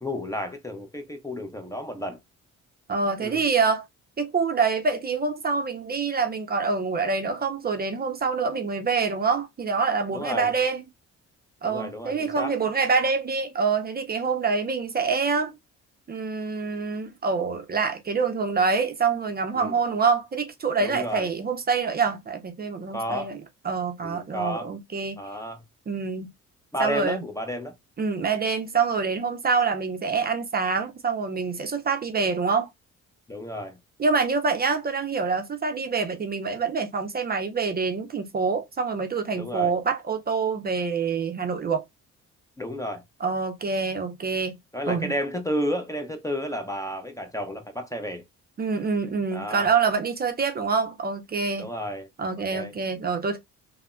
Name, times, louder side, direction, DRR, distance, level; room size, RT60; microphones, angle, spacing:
voice 1, 0.0-2.2 3.2-3.4 10.1-10.5 11.6-12.5 19.6-19.8 20.8-21.3 22.9-23.3 24.0-24.7 25.2-25.6 26.7-27.7 28.2-28.3 33.3-33.8 39.4-39.7 42.6-43.0 44.7-48.2 49.3-49.7 51.6-52.1 52.5-52.7, equal, 10° left, 0.5 m, -31 dB
voice 2, 2.9-3.8 4.2-10.8 11.6-15.5 16.1-23.4 23.6-25.2 25.9-26.3 26.8-27.2 28.0-32.7 34.0-41.8 43.2-44.5 44.9-45.1 48.6-51.7 52.2-53.4, right 5 dB, 30° right, 0.5 m, -26 dB
3.3 x 2.0 x 2.4 m
cardioid pair, 90°, 30 cm